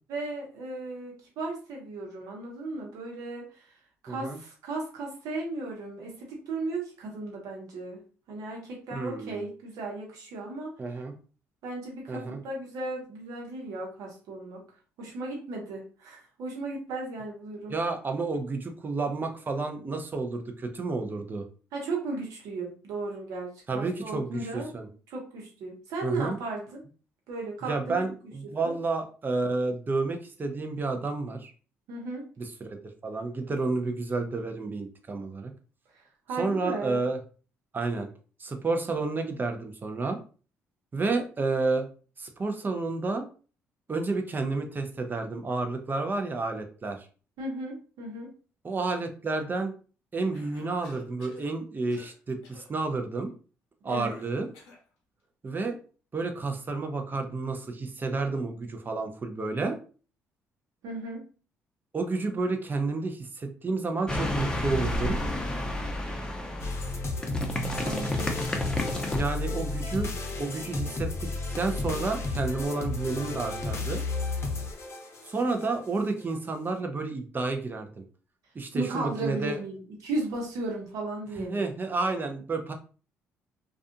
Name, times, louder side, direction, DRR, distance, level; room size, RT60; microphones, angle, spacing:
voice 1, 0.1-3.7 4.0-8.0 8.3-10.7 11.6-14.6 15.0-17.8 21.7-24.7 25.1-26.8 27.3-28.0 28.4-28.7 31.9-32.3 35.9-36.0 36.3-37.0 47.4-48.3 53.8-54.2 60.8-61.2 67.8-68.4 78.7-81.7, right 2 dB, 75° right, -1 dB, 1.0 m, -35 dB
voice 2, 4.1-4.4 8.9-9.5 10.8-11.2 12.1-12.4 17.7-21.4 23.7-24.9 26.0-26.4 27.7-31.5 32.4-32.8 33.0-35.5 36.4-37.2 37.7-38.1 38.4-40.2 40.9-41.9 42.2-43.3 43.9-47.1 48.6-49.7 50.1-53.3 53.8-54.5 55.4-55.8 56.1-59.8 61.9-65.2 69.1-70.1 70.4-74.0 75.2-78.0 78.5-79.6 81.4-82.7, right 3 dB, 35° right, 5 dB, 0.6 m, -30 dB
Cough, 50.3-51.5 51.9-52.2 52.4-52.7 54.0-54.9, left 4 dB, 85° left, 0.7 m, -52 dB
sound 1, 64.1-69.2, left 1 dB, 15° left, 0.7 m, -31 dB
sound 2, 66.6-75.7, left 3 dB, 45° left, 0.7 m, -33 dB
2.4 x 2.4 x 2.6 m, 0.38 s
hypercardioid pair, 55°, 6 cm